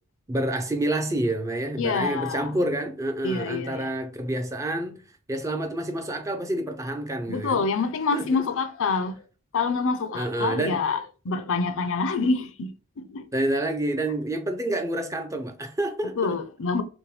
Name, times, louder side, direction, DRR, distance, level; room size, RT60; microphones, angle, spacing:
voice 1, 0.3-5.0 5.3-7.6 8.1-8.5 10.1-10.8 13.3-16.4, right 1 dB, 15° right, 0.5 m, -28 dB
voice 2, 1.8-2.6 3.2-3.9 7.3-9.2 9.5-13.3 16.1-16.8, left 4 dB, 60° left, 0.6 m, -26 dB
5.9 x 2.2 x 3.1 m
head